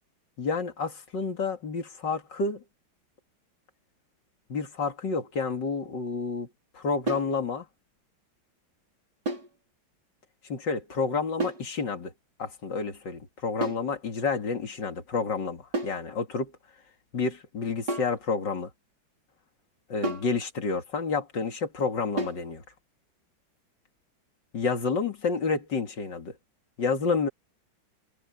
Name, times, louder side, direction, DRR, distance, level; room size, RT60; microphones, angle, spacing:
voice 1, 0.4-2.6 4.5-6.5 6.7-7.6 10.5-12.1 12.4-16.5 17.1-18.7 19.9-22.6 24.5-26.3 26.8-27.3, left 4 dB, 65° left, 2.9 m, -29 dB
sound 1, 7.1-7.4 9.3-9.6 11.4-11.7 13.6-13.9 15.7-16.0 17.9-18.2 20.0-20.4 22.2-22.5, right 2 dB, 60° right, 5.7 m, -31 dB
omnidirectional pair, 2.1 m